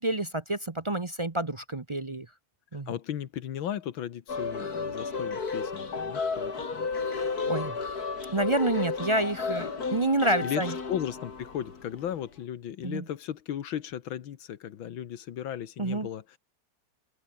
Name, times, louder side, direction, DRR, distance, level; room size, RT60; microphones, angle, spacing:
voice 1, 0.0-2.3 2.7-2.9 7.0-7.8 8.3-10.7 12.8-13.0 15.8-16.1, right 1 dB, 30° right, 0.6 m, -28 dB
voice 2, 2.7-6.9 10.4-16.4, left 10 dB, 90° left, 2.0 m, -36 dB
sound 1, 4.3-12.1, left 4 dB, 50° left, 3.2 m, -33 dB
open air
omnidirectional pair, 2.1 m